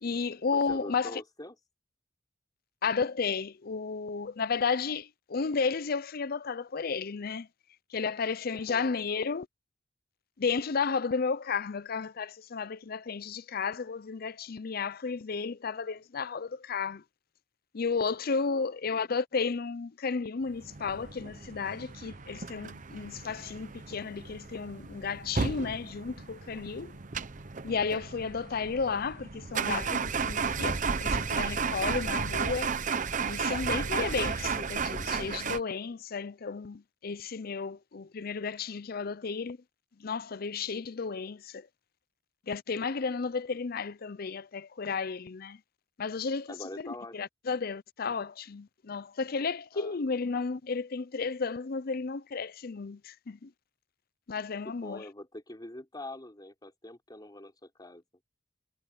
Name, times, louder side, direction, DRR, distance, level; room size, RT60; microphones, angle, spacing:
voice 1, 0.0-1.2 2.8-7.5 7.9-9.5 10.4-17.0 17.7-26.9 27.6-32.7 33.2-39.6 40.0-41.7 42.5-45.6 46.0-53.5 54.3-55.1, left 5 dB, 55° left, 0.6 m, -33 dB
voice 2, 0.5-1.6 8.5-9.0 18.5-18.7 46.5-47.2 49.7-50.0 54.6-58.0, left 1 dB, 20° left, 3.7 m, -44 dB
sound 1, 20.6-35.6, right 5 dB, 45° right, 0.9 m, -33 dB
head